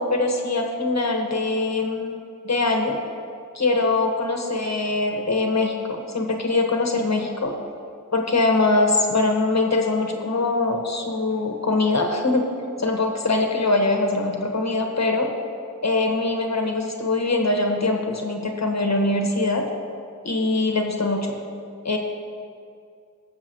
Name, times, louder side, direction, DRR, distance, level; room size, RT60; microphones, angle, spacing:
voice 1, 0.0-2.1 2.4-3.0 3.5-7.5 8.1-12.5 12.8-15.3 15.8-19.6 20.2-21.3 21.8-22.0, left 2 dB, 55° left, 2 dB, 1.5 m, -22 dB
21.5 x 7.3 x 3.1 m, 2.4 s
wide cardioid pair, 60°, 32 cm